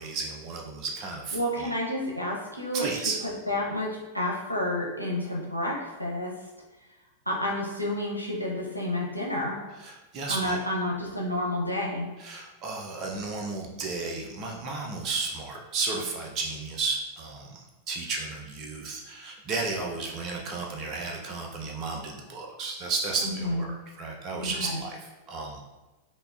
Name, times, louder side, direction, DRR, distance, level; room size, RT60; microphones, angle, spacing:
voice 1, 0.0-1.4 2.7-3.2 9.8-10.5 12.2-17.6 17.9-23.7 24.0-25.0 25.3-25.6, right 3 dB, 35° right, 0 dB, 0.5 m, -33 dB
voice 2, 1.3-6.3 7.3-9.6 10.3-12.1 23.2-23.7 24.4-24.8, left 1 dB, 90° right, -3 dB, 0.6 m, -30 dB
5.3 x 2.3 x 2.4 m, 1.1 s
figure-of-eight pair, 90°, 0 cm